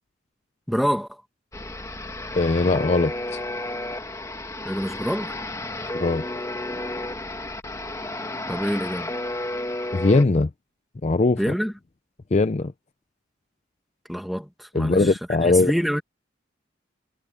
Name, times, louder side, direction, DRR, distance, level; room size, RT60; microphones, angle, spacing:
voice 1, 0.7-1.1 4.6-5.3 8.5-9.1 11.4-11.7 14.1-16.0, equal, ahead, 1.8 m, -26 dB
sound 1, 1.5-10.2, left 1 dB, 15° left, 1.6 m, -32 dB
voice 2, 2.3-3.4 6.0-6.2 9.9-10.5 11.0-11.4 12.3-12.7 14.7-15.7, left 3 dB, 35° left, 0.5 m, -20 dB
head